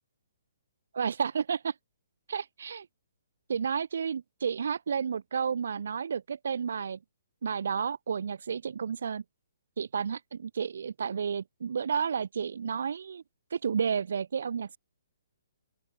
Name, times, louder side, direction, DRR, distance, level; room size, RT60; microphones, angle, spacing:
voice 1, 0.9-1.7 2.3-2.9 3.5-7.0 7.4-9.2 9.8-13.2 13.5-14.8, right 6 dB, 65° right, 1.6 m, -31 dB
open air
hypercardioid pair, 170°, 0 cm